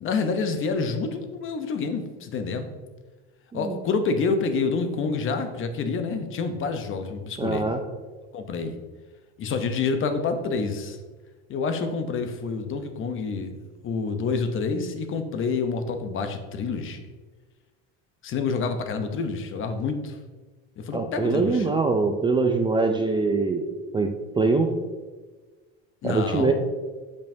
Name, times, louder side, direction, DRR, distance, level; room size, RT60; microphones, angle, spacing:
voice 1, 0.0-2.7 3.5-7.7 8.3-8.8 9.4-11.0 11.5-13.5 13.8-17.0 18.2-20.2 20.8-21.7 26.0-26.5, left 4 dB, 40° left, 7 dB, 0.8 m, -28 dB
voice 2, 7.4-7.8 20.9-23.6 23.9-24.7 26.0-26.5, right 3 dB, 15° right, 4 dB, 0.4 m, -23 dB
7.0 x 5.1 x 2.7 m, 1.3 s
supercardioid pair, 100°, 31 cm